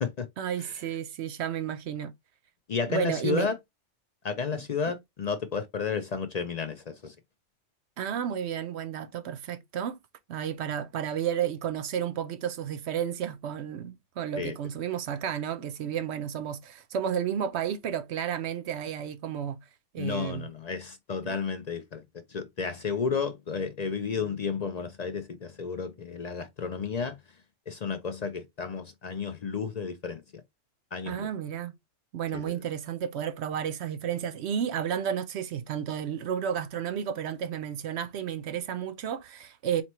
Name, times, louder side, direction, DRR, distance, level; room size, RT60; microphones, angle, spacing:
voice 1, 0.4-2.1 2.9-3.5 4.5-4.6 8.0-10.0 10.3-19.6 19.9-20.5 21.2-21.3 31.1-31.7 32.1-39.8, right 9 dB, 70° right, 0.8 m, -32 dB
voice 2, 2.7-3.6 4.2-7.2 14.4-14.6 20.0-27.2 27.7-30.4 30.9-31.3 32.3-32.6, left 5 dB, 60° left, 0.4 m, -32 dB
4.3 x 2.9 x 3.0 m
omnidirectional pair, 1.3 m